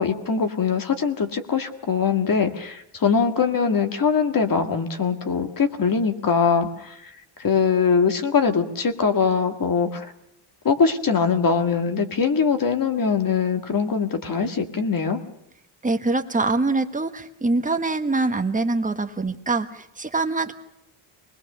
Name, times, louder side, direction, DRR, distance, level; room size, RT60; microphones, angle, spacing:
voice 1, 0.0-7.0 7.4-10.1 10.6-15.2, left 5 dB, 40° left, 7 dB, 2.0 m, -22 dB
voice 2, 15.8-20.5, right 3 dB, 15° right, 7 dB, 1.4 m, -24 dB
25.0 x 20.5 x 6.7 m, 0.79 s
cardioid pair, 125°, 49 cm